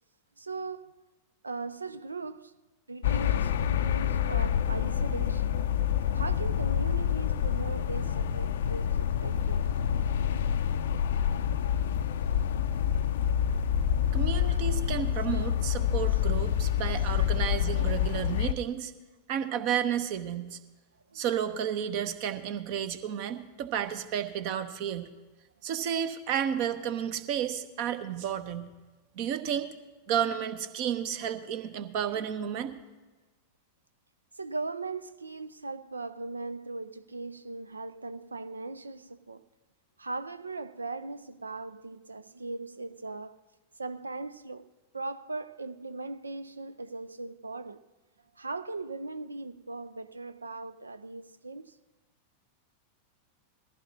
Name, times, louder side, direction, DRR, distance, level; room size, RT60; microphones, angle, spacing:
voice 1, 0.4-0.9 1.4-2.6 2.9-5.5 6.1-9.7 10.4-10.5 11.3-11.6 12.3-12.4 14.1-14.9 15.3-15.5 15.9-16.2 16.5-16.6 17.2-17.3 21.1-21.2 32.1-32.3 34.3-39.4 40.0-43.4 43.8-47.8 48.3-51.8, right 3 dB, 80° right, 0.4 m, -39 dB
sound 1, 3.0-18.5, left 9 dB, 60° left, 0.4 m, -27 dB
voice 2, 14.1-18.9 19.3-20.6 21.1-25.1 25.6-28.7 29.1-29.7 30.1-32.7, right 9 dB, 45° right, 1.0 m, -32 dB
20.5 x 15.0 x 2.8 m
figure-of-eight pair, 90°, 0 cm